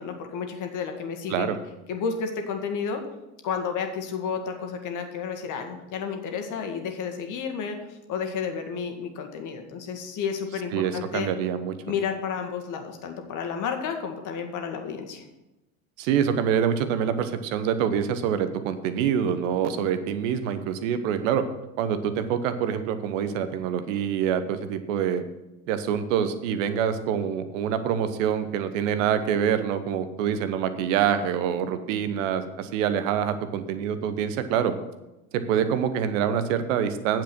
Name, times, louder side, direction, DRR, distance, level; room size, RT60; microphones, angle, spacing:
voice 1, 0.0-1.5 1.9-3.0 3.4-11.3 11.9-15.2, left 6 dB, 45° left, 5 dB, 1.8 m, -31 dB
voice 2, 10.7-11.7 16.0-21.4 21.8-25.2 25.7-34.7 35.3-37.2, right 8 dB, 60° right, 11 dB, 1.1 m, -26 dB
9.1 x 7.6 x 6.0 m, 0.99 s
figure-of-eight pair, 70°, 42 cm